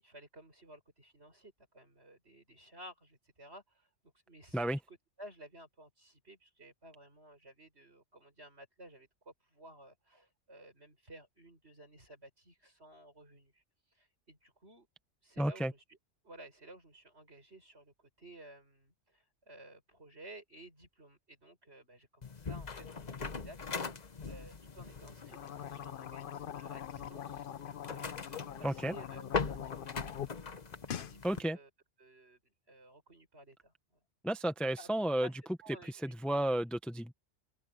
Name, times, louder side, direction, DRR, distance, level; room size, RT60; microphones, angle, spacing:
voice 1, 0.0-13.6 13.9-14.9 15.2-15.8 16.2-23.6 23.9-27.4 27.9-30.0 31.0-31.7 32.0-33.7 34.8-34.9 35.2-35.3 35.6-36.5, right 1 dB, 60° right, 7.4 m, -55 dB
voice 2, 15.4-15.7 28.6-28.9 31.2-31.6 34.2-35.3 35.8-37.1, right 1 dB, ahead, 0.9 m, -32 dB
sound 1, 22.2-31.4, left 5 dB, 40° left, 1.1 m, -41 dB
sound 2, 25.2-30.3 30.6-31.2, left 9 dB, 55° left, 0.8 m, -43 dB
open air
omnidirectional pair, 1.2 m